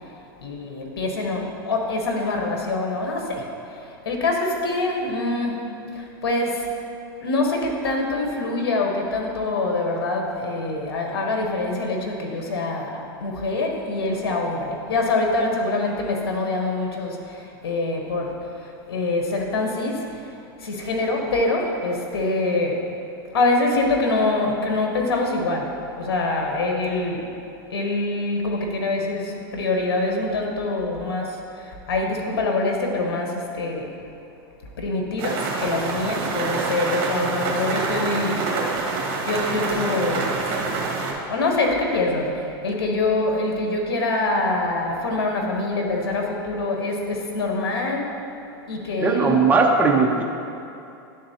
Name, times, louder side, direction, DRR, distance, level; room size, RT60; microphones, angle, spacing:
voice 1, 0.4-6.7 7.2-22.8 23.3-27.3 27.7-33.9 34.8-38.6 38.9-40.5 41.3-48.1 48.7-49.4, left 2 dB, 85° left, 1 dB, 1.0 m, -25 dB
sound 1, 35.2-41.1, right 3 dB, 45° right, 1.4 m, -26 dB
voice 2, 49.0-50.2, right 4 dB, 15° right, -1 dB, 0.7 m, -18 dB
11.0 x 3.8 x 2.8 m, 2.7 s
supercardioid pair, 130°, 13 cm